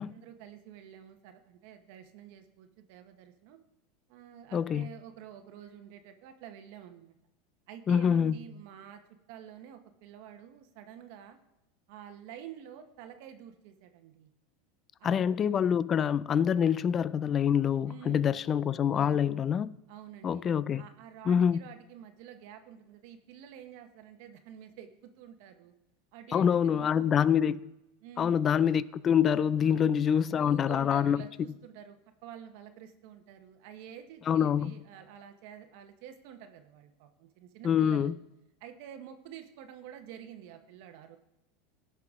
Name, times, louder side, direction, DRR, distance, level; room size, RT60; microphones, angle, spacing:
voice 1, 0.0-3.6 4.1-7.2 7.7-11.4 11.9-14.3 15.0-15.3 17.9-18.4 18.9-19.3 19.9-20.4 20.8-25.7 26.1-27.5 28.0-28.6 29.6-29.9 30.3-38.1 38.6-41.2, right 9 dB, 60° right, 0.9 m, -49 dB
voice 2, 4.5-4.9 7.9-8.4 15.0-19.7 20.2-20.8 21.3-21.6 26.3-27.7 28.2-31.2 34.3-34.8 37.6-38.1, left 8 dB, 25° left, 0.3 m, -26 dB
16.5 x 5.8 x 3.6 m
supercardioid pair, 145°, 0 cm